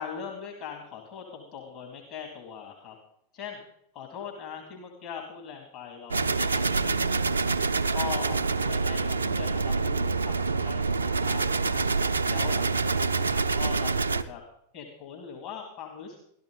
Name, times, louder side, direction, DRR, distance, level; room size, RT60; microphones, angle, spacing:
voice 1, 0.0-3.0 3.3-3.6 3.9-7.5 7.9-11.8 12.3-14.4 14.7-16.2, left 7 dB, 45° left, 1 dB, 2.2 m, -41 dB
sound 1, 6.1-14.2, right 4 dB, 75° right, 0.5 m, -26 dB
13.5 x 12.5 x 3.8 m, 0.74 s
figure-of-eight pair, 90°, 0 cm